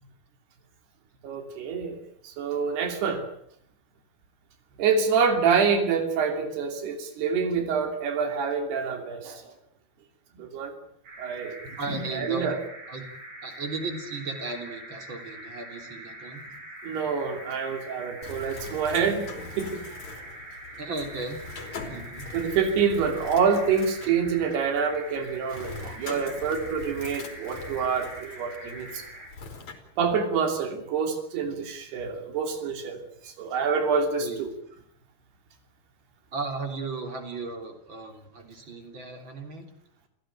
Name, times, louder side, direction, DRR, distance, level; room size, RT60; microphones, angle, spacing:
voice 1, 1.2-2.0 2.2-3.2 4.8-9.4 10.4-10.7 11.2-11.6 11.9-12.6 16.8-19.3 19.6-19.8 22.3-29.0 30.0-34.5, right 6 dB, 85° right, 6 dB, 4.9 m, -26 dB
sound 1, 11.0-29.3, right 1 dB, 55° right, 8.5 m, -44 dB
voice 2, 11.8-12.6 12.9-13.1 13.4-16.5 20.7-21.4 21.9-22.3 34.2-34.4 34.8-34.9 36.3-39.7, right 3 dB, 30° right, 5 dB, 3.8 m, -35 dB
Bird, 18.2-29.7, left 4 dB, 45° left, 4.7 m, -42 dB
29.0 x 16.5 x 9.0 m, 0.70 s
omnidirectional pair, 4.5 m